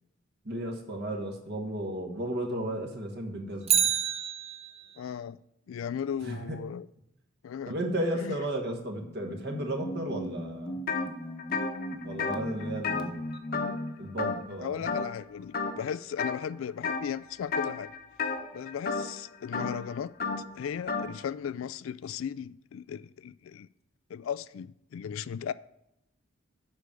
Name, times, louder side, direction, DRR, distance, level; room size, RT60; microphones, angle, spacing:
voice 1, 0.4-3.9 6.2-6.6 7.7-10.8 12.0-13.3 14.0-14.8 18.3-18.7, right 1 dB, 55° right, 1.4 m, -34 dB
Bicycle, 3.6-5.0 13.3-13.4, right 9 dB, 30° right, 0.6 m, -28 dB
voice 2, 5.0-5.4 5.7-6.9 7.4-7.7 8.1-8.4 14.6-17.9 18.5-20.1 20.6-23.7 24.1-25.5, left 8 dB, 80° left, 0.3 m, -36 dB
sound 1, 8.8-14.1, equal, 20° left, 0.7 m, -38 dB
sound 2, 10.9-11.1 11.4-13.9 14.2-14.6 14.9-15.2 15.5-16.4 16.8-17.1 17.5-21.1, left 4 dB, 45° left, 1.0 m, -32 dB
8.0 x 5.2 x 6.8 m
head